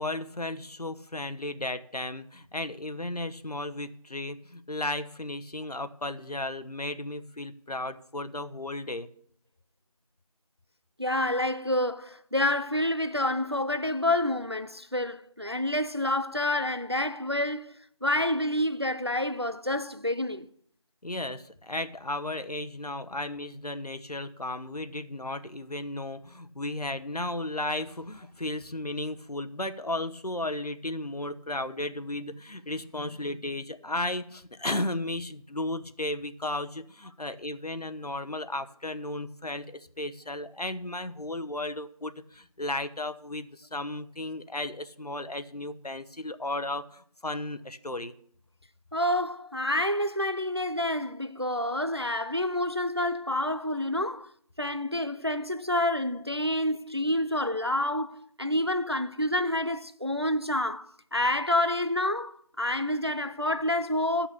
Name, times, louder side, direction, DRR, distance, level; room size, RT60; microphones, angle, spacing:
voice 1, 0.0-9.1 21.0-48.1, left 1 dB, 80° left, 1.0 m, -34 dB
voice 2, 11.0-20.5 48.9-54.3 54.6-64.3, left 1 dB, 40° right, 0.5 m, -28 dB
13.5 x 6.0 x 6.9 m
figure-of-eight pair, 180°, 20 cm